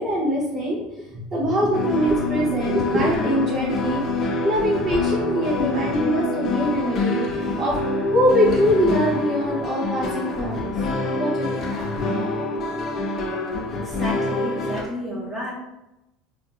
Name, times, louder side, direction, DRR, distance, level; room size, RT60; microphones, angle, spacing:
voice 1, 0.0-7.8 8.1-10.7 11.1-11.6, equal, 25° right, -5 dB, 0.8 m, -23 dB
sound 1, 1.7-14.8, left 2 dB, 40° left, 0.7 m, -26 dB
voice 2, 13.8-15.5, equal, 10° right, -8 dB, 1.3 m, -31 dB
5.5 x 2.6 x 2.5 m, 0.95 s
supercardioid pair, 140°, 0 cm